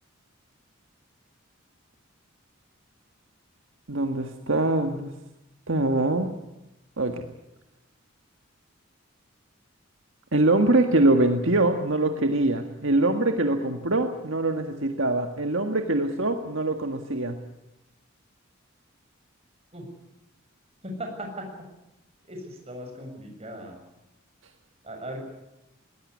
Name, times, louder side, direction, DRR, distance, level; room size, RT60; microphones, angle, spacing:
voice 1, 3.9-5.1 5.7-6.3 7.0-7.2 10.3-17.4, right 2 dB, 65° right, 5 dB, 1.7 m, -23 dB
voice 2, 20.8-21.5 22.3-23.8 24.8-25.2, equal, 30° right, 3 dB, 7.2 m, -37 dB
20.0 x 20.0 x 9.8 m, 0.92 s
head